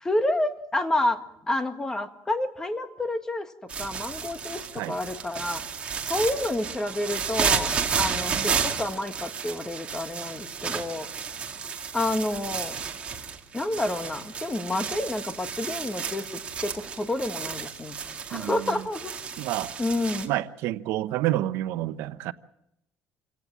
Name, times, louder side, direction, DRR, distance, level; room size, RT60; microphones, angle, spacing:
voice 1, 0.0-3.5 3.8-5.6 6.0-11.1 11.9-12.8 13.5-19.2 19.8-20.3, left 1 dB, 15° left, 1.7 m, -29 dB
sound 1, 3.7-20.3, right 6 dB, 25° right, 2.4 m, -32 dB
voice 2, 18.3-18.8 19.4-19.7 20.2-22.3, right 15 dB, 80° right, 0.9 m, -29 dB
27.0 x 17.5 x 7.4 m
cardioid pair, 150°, 4 cm